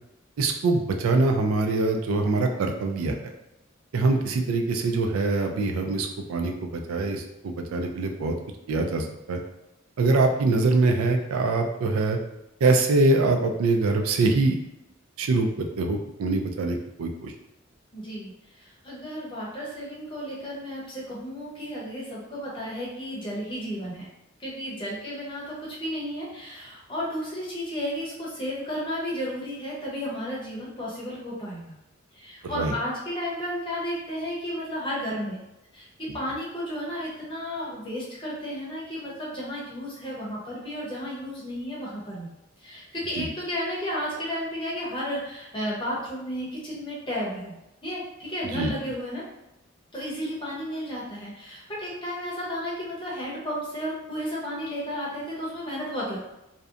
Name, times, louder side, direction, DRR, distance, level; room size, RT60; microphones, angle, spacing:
voice 1, 0.4-3.2 3.9-8.3 8.7-9.4 10.0-12.2 12.6-14.6 15.2-17.3 32.5-32.7 43.1-43.3 48.5-48.7, right 3 dB, 80° right, 4 dB, 0.4 m, -24 dB
voice 2, 17.9-18.3 18.6-24.1 24.4-31.8 32.1-35.4 35.7-42.3 42.6-47.5 47.8-49.2 49.9-56.3, equal, 25° left, -6 dB, 0.8 m, -33 dB
2.7 x 2.1 x 2.4 m, 0.91 s
head